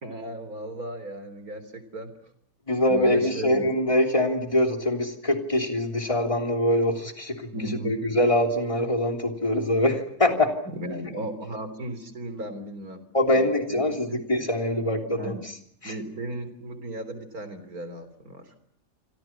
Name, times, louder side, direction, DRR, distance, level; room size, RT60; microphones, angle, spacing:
voice 1, 0.0-2.1 2.9-3.7 7.5-8.0 10.7-13.0 13.3-14.2 15.1-15.5 15.8-18.5, right 1 dB, 60° right, 11 dB, 3.9 m, -35 dB
voice 2, 2.7-7.4 7.8-10.5 11.0-11.1 13.1-15.3 15.8-15.9, left 1 dB, 20° left, 5 dB, 3.2 m, -24 dB
30.0 x 26.0 x 5.9 m, 0.66 s
omnidirectional pair, 1.8 m